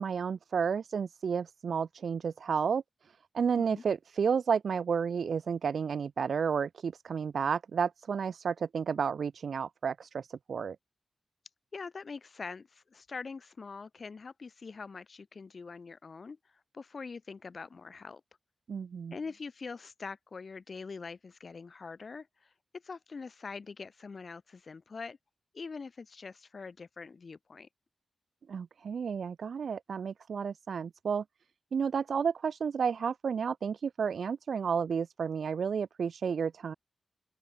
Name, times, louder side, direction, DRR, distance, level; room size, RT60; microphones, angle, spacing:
voice 1, 0.0-2.8 3.3-10.8 18.7-19.1 28.5-31.2 31.7-36.7, right 6 dB, 80° right, 0.5 m, -31 dB
voice 2, 11.7-16.4 16.7-18.2 19.1-25.2 25.5-27.7, left 4 dB, 45° left, 4.0 m, -44 dB
open air
wide cardioid pair, 180°, 0 cm